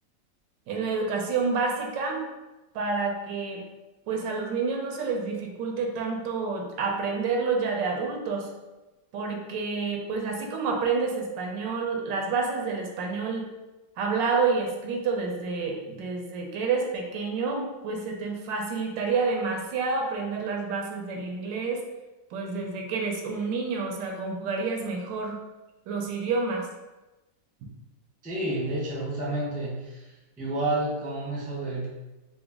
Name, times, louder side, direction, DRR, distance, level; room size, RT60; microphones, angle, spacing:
voice 1, 0.7-2.3 2.7-3.6 4.1-8.5 9.1-13.5 14.0-21.8 22.3-25.4 25.9-26.7, right 4 dB, 80° right, 1 dB, 1.3 m, -29 dB
voice 2, 28.2-30.1 30.4-31.9, right 2 dB, 5° right, -6 dB, 0.6 m, -30 dB
3.9 x 2.2 x 3.5 m, 1.1 s
omnidirectional pair, 2.0 m